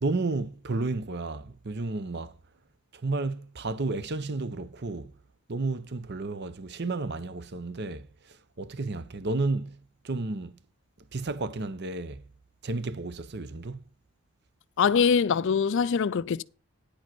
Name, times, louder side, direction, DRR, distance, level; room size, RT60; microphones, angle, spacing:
voice 1, 0.0-2.3 2.9-5.1 5.5-10.6 11.1-12.2 12.6-13.8, right 3 dB, 50° right, 0.7 m, -32 dB
voice 2, 14.8-16.4, left 6 dB, 55° left, 0.4 m, -23 dB
10.5 x 5.2 x 6.0 m
head